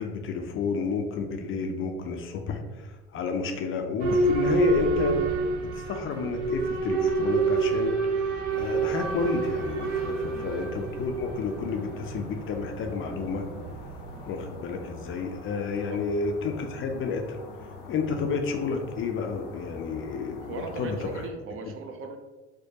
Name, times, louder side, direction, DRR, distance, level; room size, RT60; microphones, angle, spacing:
voice 1, 0.0-5.2 5.7-7.9 8.5-13.4 14.3-17.4 17.9-21.1, left 4 dB, 35° left, 4 dB, 0.4 m, -30 dB
Boat Water vehicle / Alarm, 4.0-14.7, right 3 dB, 80° right, 0.6 m, -28 dB
sound 1, 8.5-21.3, left 4 dB, 80° left, 0.7 m, -44 dB
voice 2, 20.4-22.2, right 4 dB, 40° right, 5 dB, 0.5 m, -38 dB
4.4 x 2.2 x 2.8 m, 1.2 s
hypercardioid pair, 65°, 35 cm